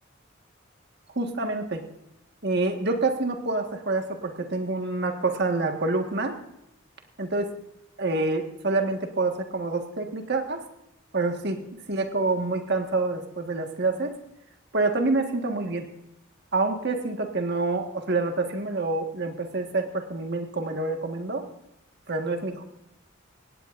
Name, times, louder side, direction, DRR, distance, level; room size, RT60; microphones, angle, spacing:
voice 1, 1.1-1.8 2.4-6.4 7.2-7.5 8.0-10.6 11.1-11.6 11.9-14.2 14.7-15.8 16.5-21.5 22.1-22.6, right 3 dB, 55° right, 5 dB, 1.6 m, -27 dB
17.5 x 17.0 x 2.6 m, 0.82 s
head